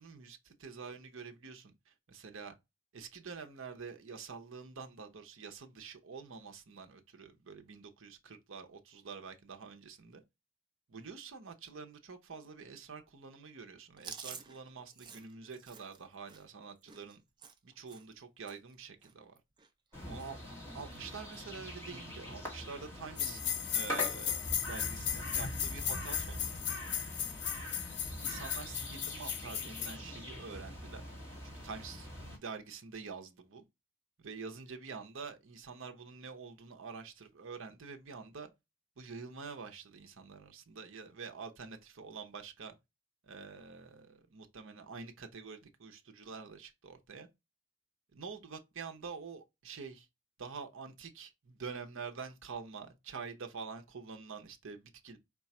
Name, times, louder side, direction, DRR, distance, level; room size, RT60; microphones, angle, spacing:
voice 1, 0.0-2.5 2.9-10.2 10.9-17.2 17.6-19.4 20.1-20.4 20.7-23.4 23.7-26.5 28.2-31.0 31.4-33.6 34.2-38.5 39.0-42.7 43.2-47.3 48.1-50.1 50.4-55.2, right 5 dB, 60° right, 0.7 m, -47 dB
Chewing mastication, 14.0-18.2 18.5-18.7 19.0-19.9 20.2-20.5 20.7-21.4 21.9-22.0 23.0-23.5, right 6 dB, 20° right, 0.3 m, -51 dB
sound 1, 19.9-32.4, equal, 10° left, 1.4 m, -43 dB
sound 2, 23.2-30.0, left 9 dB, 50° left, 0.6 m, -36 dB
4.7 x 2.3 x 4.1 m
head